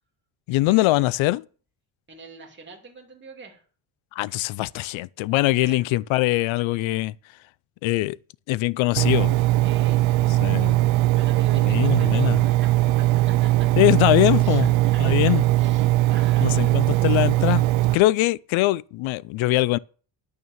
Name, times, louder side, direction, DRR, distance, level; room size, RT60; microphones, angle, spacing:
voice 1, 0.5-1.4 4.2-7.1 7.8-8.2 8.5-9.4 10.4-10.8 11.7-12.4 13.8-14.7 15.0-15.4 16.4-17.6 17.9-19.8, left 18 dB, 90° left, 0.5 m, -22 dB
voice 2, 2.1-3.6 5.6-5.9 9.6-10.3 10.9-13.7 14.4-16.8, right 5 dB, 25° right, 2.6 m, -44 dB
Engine, 9.0-17.9, right 17 dB, 90° right, 0.5 m, -20 dB
10.5 x 6.6 x 7.1 m
cardioid pair, 175°, 45 cm